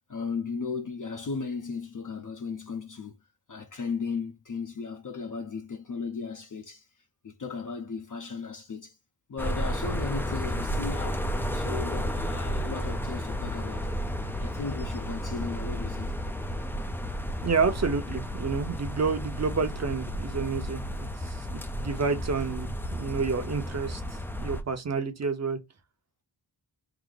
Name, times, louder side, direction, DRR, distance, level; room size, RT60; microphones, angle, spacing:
voice 1, 0.1-3.2 3.5-6.9 7.2-9.0 9.3-13.9 14.4-16.1 22.4-22.5, left 4 dB, 45° left, 0.6 m, -36 dB
sound 1, 9.4-24.6, equal, 5° left, 0.4 m, -32 dB
voice 2, 17.4-21.1 21.5-24.0 24.4-25.6, right 5 dB, 35° right, 0.8 m, -29 dB
4.8 x 2.0 x 3.9 m
wide cardioid pair, 155°, 44 cm